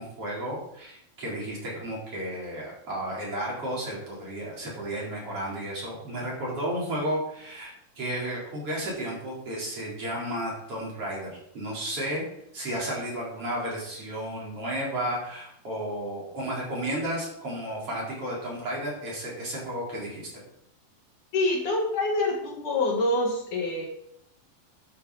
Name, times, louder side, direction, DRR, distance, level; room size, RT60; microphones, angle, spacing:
voice 1, 0.0-12.2 12.5-20.3, right 1 dB, 40° right, -5 dB, 4.6 m, -33 dB
voice 2, 21.3-23.9, left 2 dB, 60° left, 0 dB, 3.0 m, -26 dB
11.5 x 9.2 x 4.1 m, 0.74 s
omnidirectional pair, 4.4 m